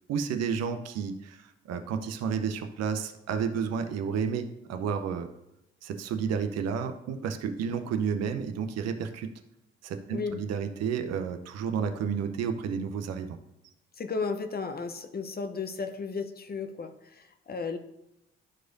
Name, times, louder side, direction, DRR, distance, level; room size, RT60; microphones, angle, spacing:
voice 1, 0.1-5.3 5.8-9.3 9.8-13.4, right 6 dB, 55° right, 7 dB, 0.7 m, -31 dB
voice 2, 10.1-10.4 14.0-17.8, left 4 dB, 30° left, 7 dB, 0.8 m, -34 dB
12.0 x 4.7 x 2.6 m, 0.88 s
figure-of-eight pair, 40°, 30 cm